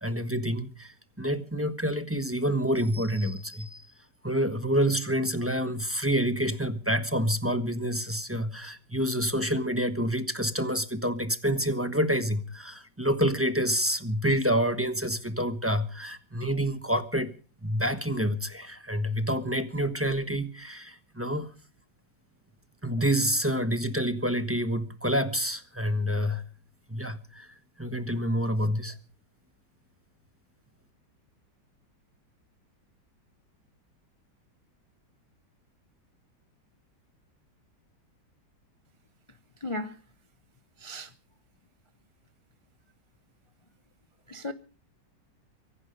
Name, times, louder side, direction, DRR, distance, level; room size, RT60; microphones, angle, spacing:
voice 1, 0.0-3.9 4.2-17.3 17.6-21.5 22.8-26.4 26.9-27.5 27.8-28.9, equal, 10° right, 0.9 m, -28 dB
voice 2, 39.6-39.9 40.8-41.1 44.3-44.5, left 1 dB, 50° left, 0.3 m, -35 dB
24.0 x 11.0 x 5.3 m
omnidirectional pair, 2.0 m